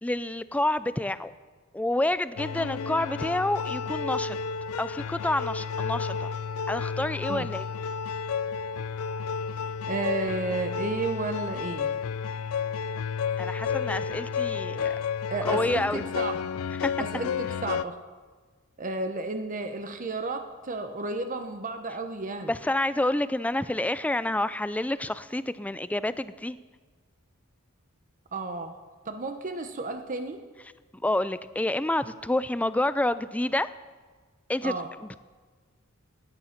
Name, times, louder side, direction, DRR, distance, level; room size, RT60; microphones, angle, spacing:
voice 1, 0.0-1.3 1.7-4.4 4.8-6.3 6.7-7.6 13.4-14.9 15.4-16.0 16.8-17.0 22.5-26.6 30.9-33.7 34.5-34.7 35.0-35.2, left 1 dB, 5° left, 15 dB, 0.4 m, -28 dB
sound 1, 2.4-17.8, left 6 dB, 75° left, 0.4 m, -31 dB
voice 2, 9.9-11.9 15.3-15.8 16.2-16.4 17.1-18.0 18.8-22.5 28.3-28.7 29.0-30.4 34.6-34.9, right 3 dB, 40° right, 7 dB, 0.9 m, -32 dB
16.5 x 9.7 x 5.9 m, 1.4 s
head